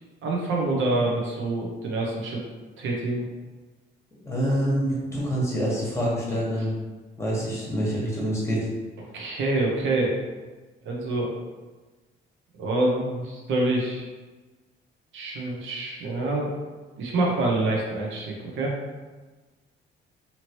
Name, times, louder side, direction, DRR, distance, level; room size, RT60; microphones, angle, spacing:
voice 1, 0.2-2.4 2.8-3.2 9.1-10.1 10.8-11.3 12.6-14.1 15.1-16.5 17.0-18.8, right 2 dB, 75° right, -2 dB, 0.7 m, -26 dB
voice 2, 4.2-6.7 7.2-8.7, equal, 15° left, -6 dB, 1.2 m, -26 dB
2.9 x 2.8 x 2.9 m, 1.3 s
cardioid pair, 90°, 20 cm